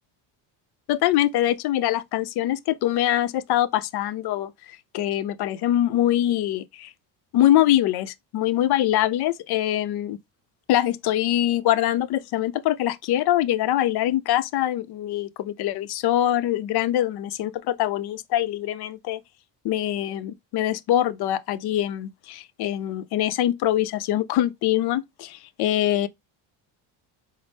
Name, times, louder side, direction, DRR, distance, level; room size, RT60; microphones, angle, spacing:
voice 1, 0.9-6.9 7.3-10.2 10.7-19.2 19.6-26.1, left 13 dB, 55° left, 0.5 m, -23 dB
5.1 x 2.0 x 3.3 m
cardioid pair, 105°, 47 cm